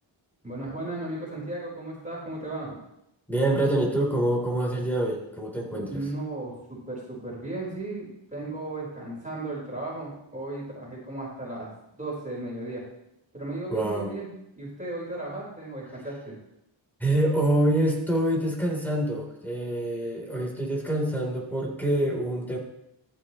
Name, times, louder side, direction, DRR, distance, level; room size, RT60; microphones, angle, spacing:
voice 1, 0.4-2.8 5.7-11.7 12.0-12.8 13.3-14.3 14.6-16.4, right 2 dB, 15° right, -5 dB, 4.8 m, -35 dB
voice 2, 3.3-6.0 13.7-14.1 17.0-22.6, right 1 dB, 5° left, -2 dB, 3.8 m, -26 dB
14.0 x 8.5 x 3.2 m, 0.82 s
cardioid pair, 70°, 47 cm